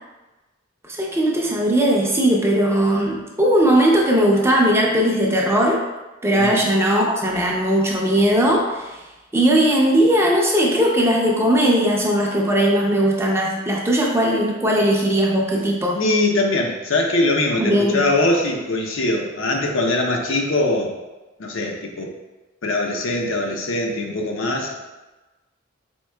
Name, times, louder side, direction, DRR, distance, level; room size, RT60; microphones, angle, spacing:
voice 1, 0.9-5.8 6.2-9.0 9.3-16.0 17.6-18.0, right 1 dB, 15° right, -2 dB, 0.5 m, -18 dB
voice 2, 15.9-21.0 21.4-22.1 22.6-24.9, left 2 dB, 80° left, 1 dB, 0.6 m, -22 dB
4.5 x 3.5 x 2.2 m, 1.1 s
head